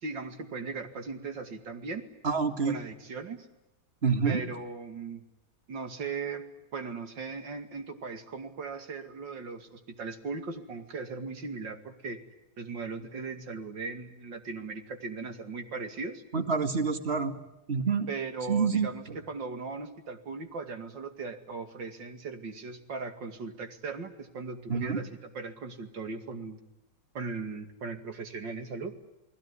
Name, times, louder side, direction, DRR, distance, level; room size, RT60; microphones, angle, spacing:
voice 1, 0.0-2.1 2.6-3.5 4.2-5.2 5.7-6.5 6.7-12.2 12.6-16.2 18.1-26.6 27.1-28.9, right 4 dB, 85° right, 7 dB, 3.0 m, -38 dB
voice 2, 2.2-2.8 4.0-4.4 16.3-17.3 17.7-18.1 18.5-18.9 24.7-25.0, right 5 dB, 35° right, 8 dB, 2.1 m, -27 dB
30.0 x 20.0 x 9.8 m, 0.89 s
omnidirectional pair, 1.9 m